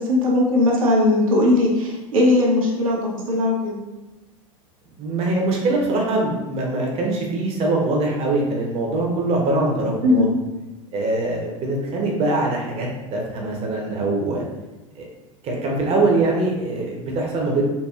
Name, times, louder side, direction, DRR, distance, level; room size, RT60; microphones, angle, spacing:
voice 1, 0.1-3.8 10.0-10.3, left 2 dB, 75° right, -3 dB, 0.9 m, -19 dB
voice 2, 5.0-10.3 10.9-14.4 15.0-15.1 15.4-17.7, right 2 dB, 35° right, -1 dB, 0.8 m, -23 dB
4.1 x 2.6 x 2.3 m, 1.1 s
figure-of-eight pair, 80°, 18 cm